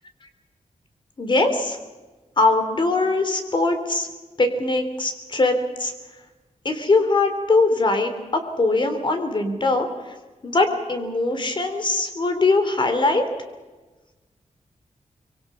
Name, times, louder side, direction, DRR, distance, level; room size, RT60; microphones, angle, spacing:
voice 1, 1.2-1.8 2.4-4.1 4.4-5.9 6.6-10.1 10.4-13.2, left 2 dB, 40° left, 7 dB, 3.3 m, -21 dB
25.0 x 24.0 x 5.6 m, 1.2 s
wide cardioid pair, 125°, 13 cm